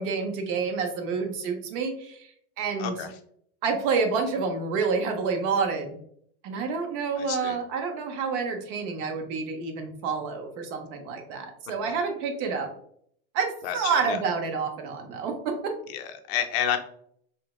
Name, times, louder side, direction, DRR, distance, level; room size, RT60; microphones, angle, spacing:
voice 1, 0.0-2.3 2.6-2.9 3.6-6.0 6.4-12.7 13.3-15.8, right 5 dB, 50° right, 4 dB, 0.6 m, -28 dB
voice 2, 2.8-3.1 7.2-7.6 11.9-12.0 13.6-14.2 15.9-16.8, left 9 dB, 65° left, 7 dB, 0.5 m, -30 dB
3.2 x 3.0 x 2.3 m, 0.66 s
supercardioid pair, 165°, 34 cm